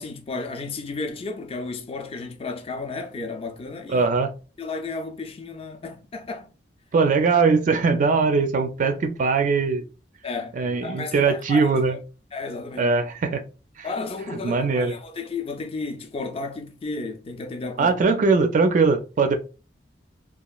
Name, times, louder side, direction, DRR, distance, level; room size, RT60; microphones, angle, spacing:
voice 1, 0.0-4.1 4.6-6.5 10.2-10.6 10.8-12.0 12.3-12.9 13.8-17.9, left 3 dB, 35° left, 0.4 m, -33 dB
voice 2, 3.9-4.3 6.9-9.8 10.6-12.0 12.8-13.4 13.8-13.9 14.3-14.9 17.8-19.4, right 4 dB, 45° right, 0.3 m, -21 dB
2.9 x 2.3 x 2.3 m
head